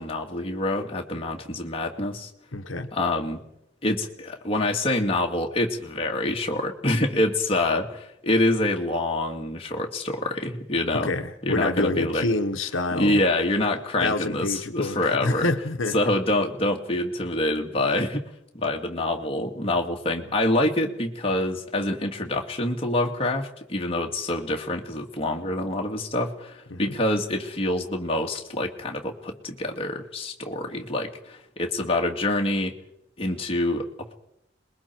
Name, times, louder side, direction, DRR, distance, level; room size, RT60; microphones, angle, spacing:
voice 1, 0.0-2.3 2.9-3.4 3.8-11.1 11.4-12.3 12.9-15.5 15.9-18.3 18.5-32.7 33.2-34.1, left 1 dB, 30° left, 1 dB, 2.1 m, -26 dB
voice 2, 2.5-2.9 11.0-13.2 14.0-16.0 26.7-26.9, left 2 dB, 85° left, 7 dB, 1.2 m, -27 dB
27.0 x 21.5 x 4.6 m, 0.80 s
head